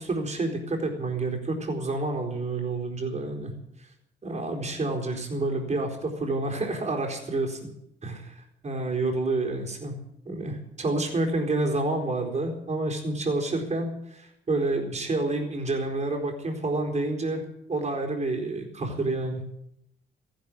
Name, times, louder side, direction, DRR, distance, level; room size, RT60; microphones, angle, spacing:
voice 1, 0.0-3.5 4.2-7.7 8.0-9.9 10.3-17.4 17.7-19.4, right 2 dB, 35° right, 2 dB, 4.3 m, -29 dB
14.5 x 11.5 x 8.7 m, 0.80 s
cardioid pair, 90°, 20 cm